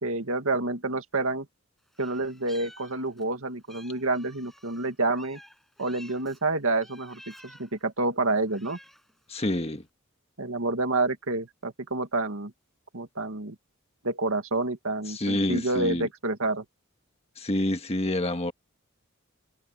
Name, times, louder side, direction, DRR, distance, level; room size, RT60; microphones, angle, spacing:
voice 1, 0.0-1.5 2.0-5.4 5.8-8.8 10.4-12.5 12.9-13.6 14.0-16.6, right 2 dB, 70° right, 2.1 m, -28 dB
Meow, 1.9-3.3 3.7-6.4 6.8-7.8 8.4-9.2, equal, ahead, 5.9 m, -52 dB
voice 2, 9.3-9.8 15.1-16.1 17.4-18.5, left 1 dB, 30° left, 1.6 m, -27 dB
head